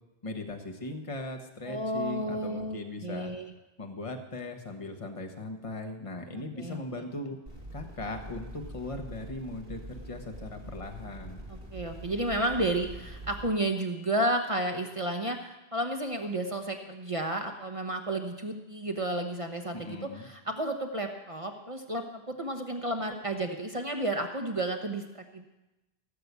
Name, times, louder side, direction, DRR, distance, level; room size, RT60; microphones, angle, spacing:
voice 1, 0.2-3.3 3.8-7.4 7.7-11.4 19.7-20.3, left 2 dB, 30° left, 4 dB, 1.4 m, -39 dB
voice 2, 1.7-3.5 6.3-6.8 11.5-25.5, right 1 dB, 35° right, 4 dB, 1.0 m, -32 dB
sound 1, 7.5-13.5, right 1 dB, 60° right, 3.7 m, -44 dB
16.5 x 6.8 x 8.2 m, 1.0 s
omnidirectional pair, 1.1 m